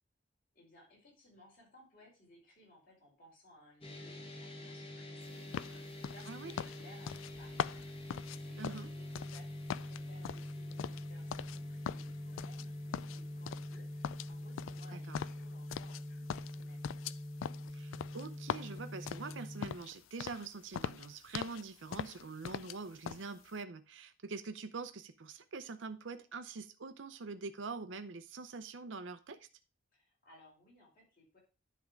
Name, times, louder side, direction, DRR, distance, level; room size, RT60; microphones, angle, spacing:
voice 1, 0.5-7.6 8.0-9.5 9.8-16.8 29.9-31.4, left 1 dB, 50° left, 5.0 m, -61 dB
sound 1, 3.8-19.8, left 1 dB, 30° left, 1.4 m, -45 dB
sound 2, 5.5-9.4 9.7-11.6 11.9-12.7 12.9-13.8 14.0-16.0 16.3-19.9 20.2-20.5 20.7-21.6 21.9-22.8 23.1-23.3, left 8 dB, 85° left, 0.3 m, -41 dB
voice 2, 8.6-8.9 14.9-15.2 17.7-29.5, right 4 dB, 70° right, 0.6 m, -44 dB
10.5 x 3.6 x 5.1 m
head